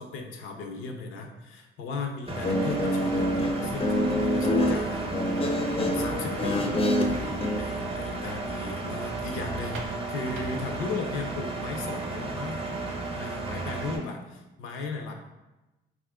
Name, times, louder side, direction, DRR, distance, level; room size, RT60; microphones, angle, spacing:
voice 1, 0.0-9.8 10.1-12.7 13.1-15.1, left 4 dB, 90° left, 4 dB, 0.5 m, -36 dB
Guitar, 2.3-7.6, left 1 dB, 30° left, 0.4 m, -26 dB
Engine, 2.3-14.0, right 3 dB, 30° right, 0.6 m, -34 dB
sound 1, 3.5-11.3, right 3 dB, 75° right, 0.5 m, -42 dB
2.8 x 2.4 x 3.4 m, 1.0 s
cardioid pair, 90°, 20 cm